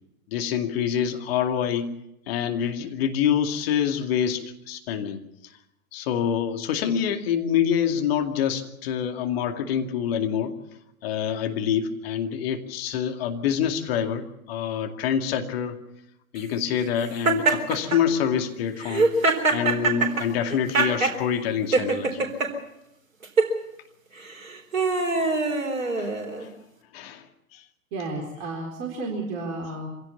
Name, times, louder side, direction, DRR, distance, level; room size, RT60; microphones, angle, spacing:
voice 1, 0.3-1.9 2.3-5.2 5.9-10.5 11.0-15.8 16.3-19.1 19.5-22.3 26.0-26.1 26.4-26.5 26.9-27.6, left 8 dB, 45° left, 5 dB, 2.4 m, -26 dB
Laughter, 17.2-18.0 18.8-21.2 21.7-22.5 23.2-23.5 24.3-26.5, right 3 dB, 65° right, 4.1 m, -23 dB
voice 2, 27.9-29.9, right 2 dB, 35° right, 1 dB, 4.3 m, -32 dB
25.0 x 17.0 x 7.1 m, 0.87 s
figure-of-eight pair, 105°, 43 cm